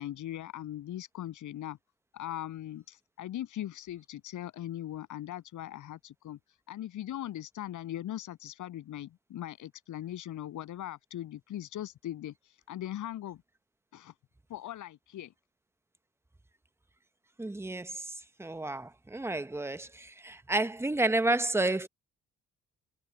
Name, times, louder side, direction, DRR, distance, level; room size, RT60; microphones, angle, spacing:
voice 1, 0.0-1.8 2.1-13.4 13.9-14.1 14.5-15.3, left 12 dB, 80° left, 7.9 m, -40 dB
voice 2, 17.4-18.1 18.4-21.9, right 2 dB, 10° right, 1.0 m, -30 dB
cardioid pair, 90°, 30 cm